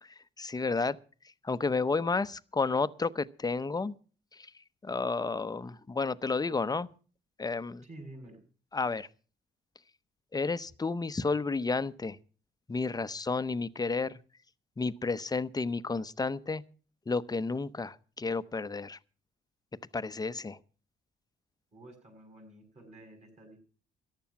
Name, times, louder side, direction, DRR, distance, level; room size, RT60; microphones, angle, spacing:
voice 1, 0.0-1.0 1.4-3.9 4.3-6.9 7.4-7.8 8.7-9.1 10.3-12.2 12.7-14.2 14.8-16.6 17.1-19.0 19.9-20.6, left 4 dB, 20° left, 0.7 m, -31 dB
voice 2, 7.8-8.4 21.7-23.6, right 1 dB, 35° right, 6.6 m, -50 dB
14.5 x 11.5 x 5.9 m
cardioid pair, 90°, 20 cm